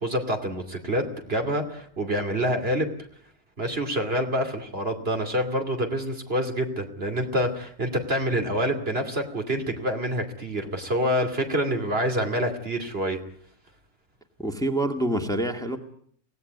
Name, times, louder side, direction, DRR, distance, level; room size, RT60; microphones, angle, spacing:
voice 1, 0.0-2.9 3.6-13.2, equal, 50° right, 5 dB, 3.0 m, -27 dB
voice 2, 14.4-15.8, right 1 dB, 5° left, 5 dB, 2.0 m, -26 dB
24.0 x 18.0 x 9.4 m, 0.63 s
omnidirectional pair, 1.3 m